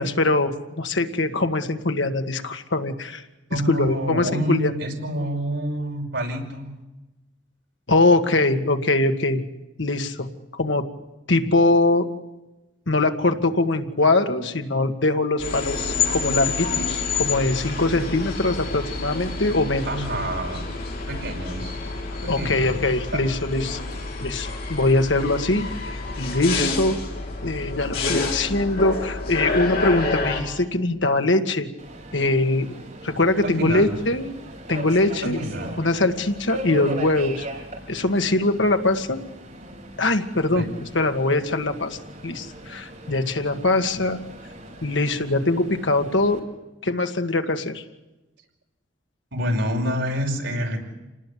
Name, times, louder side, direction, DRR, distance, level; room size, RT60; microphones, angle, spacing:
voice 1, 0.0-3.2 3.5-4.7 7.9-9.4 9.8-10.9 11.3-12.1 12.9-19.9 22.3-23.8 24.2-27.0 27.4-31.7 32.1-32.7 33.0-34.3 34.7-35.4 35.8-37.5 37.9-39.2 40.0-40.6 40.9-42.0 42.2-44.2 44.8-46.5 46.8-47.8, left 2 dB, 70° left, 6 dB, 1.9 m, -22 dB
voice 2, 3.5-6.7 19.9-20.6 21.1-21.8 22.2-22.8 23.1-23.4 33.4-34.0 35.2-35.8 40.5-40.7 49.3-50.8, equal, 70° right, 2 dB, 5.6 m, -28 dB
sound 1, 15.4-30.4, left 3 dB, 55° left, 6.9 m, -28 dB
Subway metro underground, 31.8-46.4, right 1 dB, 40° right, 5.0 m, -39 dB
28.0 x 19.5 x 8.6 m, 1.1 s
head